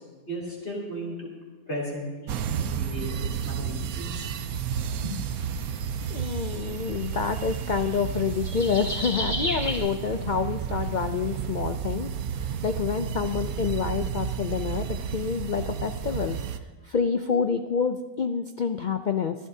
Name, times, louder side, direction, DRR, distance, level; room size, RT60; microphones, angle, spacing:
voice 1, 0.3-1.3 1.7-4.2 5.0-5.2, equal, 45° left, -6 dB, 3.3 m, -35 dB
sound 1, 2.3-16.6, right 8 dB, 80° right, 1.1 m, -32 dB
sound 2, 4.1-9.8, left 1 dB, 30° right, 2.9 m, -34 dB
voice 2, 6.1-16.4 16.8-19.4, left 6 dB, 90° left, 7 dB, 0.4 m, -28 dB
25.0 x 12.0 x 2.8 m, 1.3 s
omnidirectional pair, 1.5 m